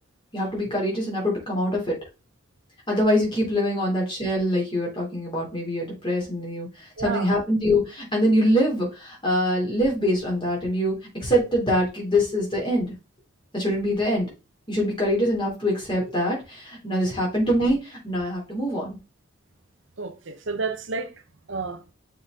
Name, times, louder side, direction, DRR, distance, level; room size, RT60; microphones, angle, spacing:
voice 1, 0.3-1.9 2.9-12.9 13.5-14.3 14.7-19.0, equal, 25° left, 3.1 m, -24 dB
voice 2, 7.0-7.4 20.0-21.1 21.5-21.8, right 4 dB, 65° right, 0.9 m, -31 dB
6.8 x 4.0 x 3.7 m
head